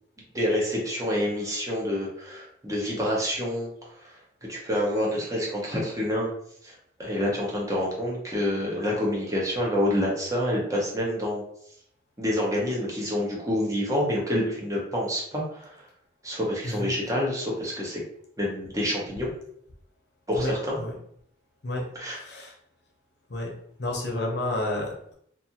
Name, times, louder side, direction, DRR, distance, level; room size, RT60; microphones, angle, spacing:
voice 1, 0.3-3.7 4.0-4.1 4.5-6.3 6.6-6.7 7.0-11.4 12.2-15.7 16.2-18.0 18.4-19.3 20.3-20.8 22.0-22.2, left 1 dB, 20° right, -4 dB, 0.7 m, -27 dB
voice 2, 20.3-20.9 21.6-22.5 23.3-23.5 23.8-25.1, left 1 dB, 60° left, -1 dB, 0.7 m, -31 dB
2.5 x 2.5 x 2.8 m, 0.68 s
head